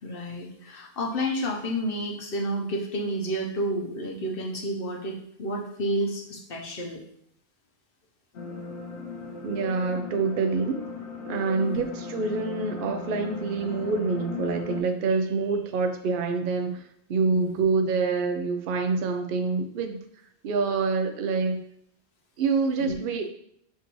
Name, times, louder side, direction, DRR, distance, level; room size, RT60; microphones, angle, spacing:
voice 1, 0.0-7.0 11.6-11.9 17.3-17.6 22.8-23.0, equal, 60° left, 1 dB, 1.0 m, -30 dB
sound 1, 8.3-14.8, left 5 dB, 85° left, 0.9 m, -37 dB
voice 2, 9.4-10.9 11.3-20.0 20.4-21.6 22.4-23.3, right 4 dB, 60° right, 7 dB, 0.7 m, -26 dB
6.7 x 2.6 x 3.0 m, 0.71 s
omnidirectional pair, 1.1 m